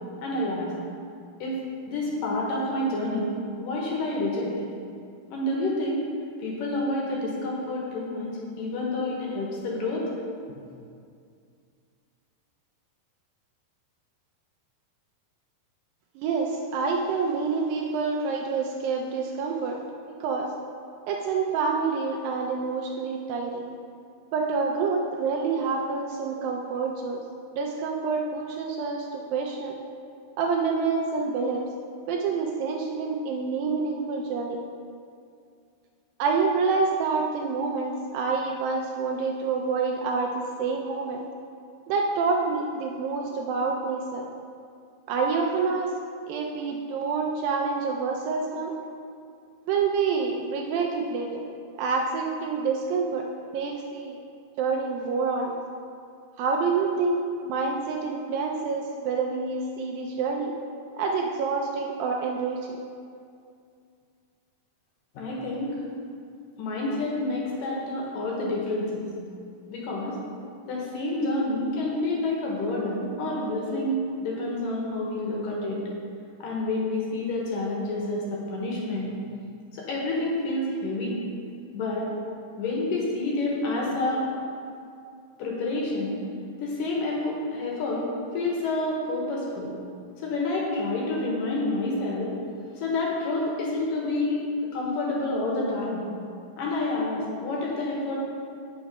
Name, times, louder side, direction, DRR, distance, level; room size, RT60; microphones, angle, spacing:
voice 1, 0.2-0.7 1.4-3.3 3.6-4.7 5.3-6.0 6.4-10.1 65.1-65.8 66.6-69.1 69.7-70.2 70.7-75.8 76.4-79.1 79.7-81.2 81.7-82.1 82.6-84.3 85.4-86.2 86.6-89.7 90.2-92.4 92.8-94.4 94.7-96.1 96.6-98.2, left 2 dB, 70° left, -3 dB, 2.6 m, -28 dB
voice 2, 16.2-19.8 20.1-20.5 21.1-23.6 24.3-27.2 27.5-29.8 30.4-31.6 32.1-34.6 36.2-41.2 41.9-44.3 45.1-45.9 46.3-48.7 49.7-51.4 51.8-54.2 54.6-55.5 56.4-60.5 61.0-62.7, right 4 dB, 80° right, 0 dB, 2.2 m, -27 dB
8.0 x 5.9 x 5.3 m, 2.4 s
omnidirectional pair, 4.4 m